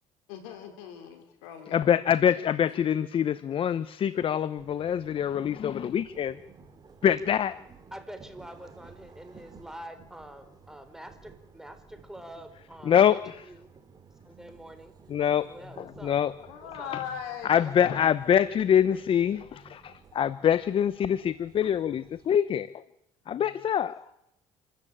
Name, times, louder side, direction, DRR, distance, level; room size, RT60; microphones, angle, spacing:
voice 1, 0.3-1.9 2.3-2.9 16.5-17.8, left 9 dB, 90° left, 5 dB, 5.0 m, -40 dB
voice 2, 1.7-6.4 7.0-7.5 12.9-13.4 15.1-15.5 16.0-16.3 17.4-22.7 23.3-24.0, left 9 dB, 50° left, 16 dB, 0.9 m, -25 dB
sound 1, 4.6-22.4, right 5 dB, 35° right, 3.4 m, -54 dB
voice 3, 7.9-13.7 14.2-15.0 15.4-16.2 16.6-16.9 17.6-18.0, right 1 dB, 5° right, 9 dB, 4.2 m, -46 dB
28.0 x 13.5 x 8.9 m, 0.81 s
supercardioid pair, 85°, 12 cm